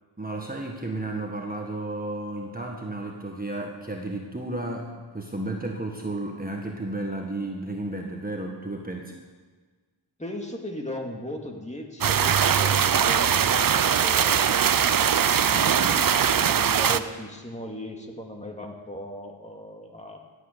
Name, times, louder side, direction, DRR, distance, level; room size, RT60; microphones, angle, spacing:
voice 1, 0.2-9.1 15.5-16.1, right 2 dB, 20° right, 1 dB, 1.6 m, -33 dB
voice 2, 10.2-20.2, left 1 dB, 15° left, 1 dB, 2.3 m, -38 dB
sound 1, 12.0-17.0, right 8 dB, 45° right, 0.6 m, -21 dB
15.5 x 8.7 x 6.8 m, 1.4 s
cardioid pair, 60°, 49 cm